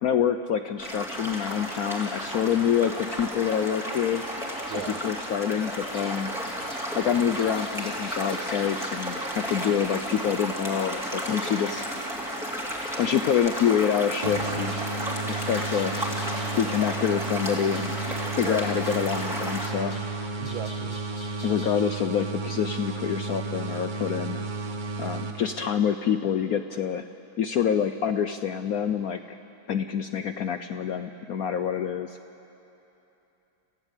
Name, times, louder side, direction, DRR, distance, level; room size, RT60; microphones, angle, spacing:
voice 1, 0.0-4.2 5.0-6.3 6.9-11.9 13.0-14.9 15.3-16.1 16.6-18.0 18.4-19.9 21.4-24.5 25.0-27.0 27.4-29.4 29.7-32.2, left 8 dB, 70° left, 9 dB, 0.9 m, -26 dB
sound 1, 0.8-19.7, equal, ahead, 3.0 m, -33 dB
sound 2, 4.1-21.9, left 1 dB, 45° left, 3.9 m, -50 dB
voice 2, 4.7-5.0 18.4-18.6 20.4-21.0 25.5-25.7, right 9 dB, 80° right, 10 dB, 1.8 m, -37 dB
sound 3, 14.2-25.9, right 3 dB, 45° right, 0.6 m, -33 dB
30.0 x 15.0 x 8.3 m, 3.0 s
omnidirectional pair, 2.2 m